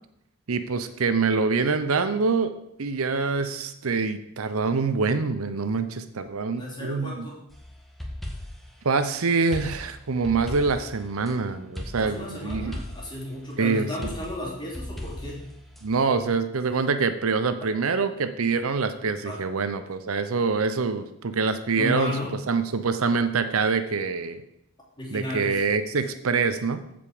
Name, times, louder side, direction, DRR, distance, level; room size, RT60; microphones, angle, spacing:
voice 1, 0.5-2.5 2.8-7.3 8.8-12.8 13.6-13.9 15.8-22.1 22.5-24.4 25.1-26.8, right 4 dB, 75° right, 10 dB, 0.7 m, -25 dB
voice 2, 6.5-7.4 11.9-15.5 16.1-16.2 19.2-19.4 21.8-22.3 25.0-25.6, left 1 dB, 20° left, -5 dB, 3.3 m, -34 dB
sound 1, 7.5-8.7 9.5-11.3 11.8-13.2 14.0-15.8, left 1 dB, ahead, 1.6 m, -37 dB
14.5 x 5.2 x 5.1 m, 0.81 s
head